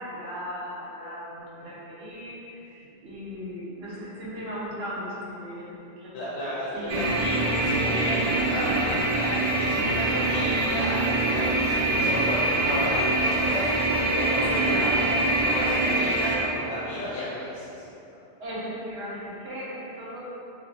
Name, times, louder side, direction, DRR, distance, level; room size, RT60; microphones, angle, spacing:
voice 1, 0.0-6.1 6.7-7.1 14.5-14.8 18.4-20.2, equal, 80° right, -8 dB, 1.0 m, -37 dB
voice 2, 6.1-17.6, left 1 dB, 75° left, -8 dB, 0.8 m, -33 dB
sound 1, 6.9-16.4, right 2 dB, 55° right, 0.4 m, -24 dB
3.1 x 2.3 x 2.5 m, 2.9 s
omnidirectional pair, 1.1 m